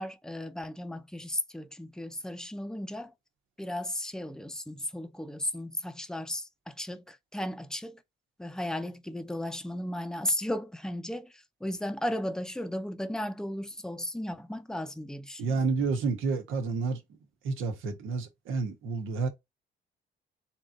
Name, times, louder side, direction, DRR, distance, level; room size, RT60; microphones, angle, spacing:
voice 1, 0.0-3.1 3.6-8.0 8.4-11.3 11.6-15.6, left 1 dB, 5° left, 0.6 m, -35 dB
voice 2, 15.4-17.0 17.4-19.3, right 4 dB, 85° right, 1.2 m, -30 dB
3.9 x 3.0 x 3.8 m
cardioid pair, 90°, 20 cm